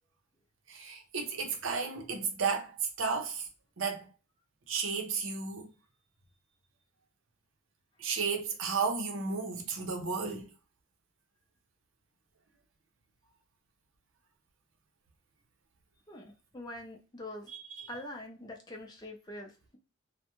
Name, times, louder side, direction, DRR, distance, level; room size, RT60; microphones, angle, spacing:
voice 1, 0.7-3.5 3.8-4.1 4.7-5.7 8.0-10.5 17.5-17.9, right 5 dB, 65° right, 0.6 m, -33 dB
voice 2, 16.1-17.5 17.9-19.8, left 1 dB, 20° left, 0.5 m, -44 dB
2.3 x 2.1 x 2.9 m
head